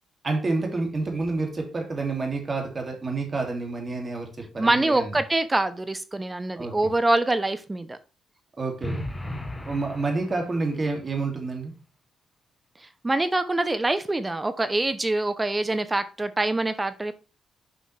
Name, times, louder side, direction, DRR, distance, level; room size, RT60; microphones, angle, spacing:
voice 1, 0.2-5.1 6.6-6.8 8.6-9.0 9.7-11.7, right 3 dB, 35° right, 3 dB, 2.4 m, -28 dB
voice 2, 4.6-8.0 12.8-17.1, right 2 dB, 20° right, 13 dB, 0.6 m, -25 dB
sound 1, 8.8-10.9, left 1 dB, 15° left, 1.0 m, -35 dB
6.9 x 5.3 x 3.3 m, 0.32 s
supercardioid pair, 55°, 0 cm